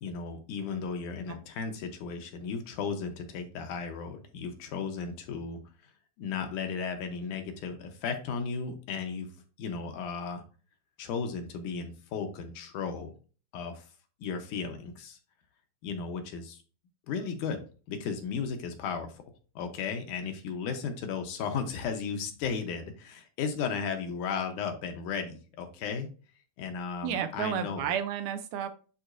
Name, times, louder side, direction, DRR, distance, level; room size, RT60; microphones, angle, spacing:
voice 1, 0.0-5.6 6.2-9.3 9.6-10.4 11.0-13.1 13.5-13.9 14.2-15.2 15.8-16.6 17.1-17.6 17.9-19.2 19.6-26.1 26.6-27.9, left 5 dB, 75° left, 5 dB, 2.3 m, -35 dB
voice 2, 27.0-28.7, right 8 dB, 80° right, 8 dB, 2.1 m, -32 dB
11.0 x 3.7 x 2.6 m, 0.37 s
omnidirectional pair, 3.8 m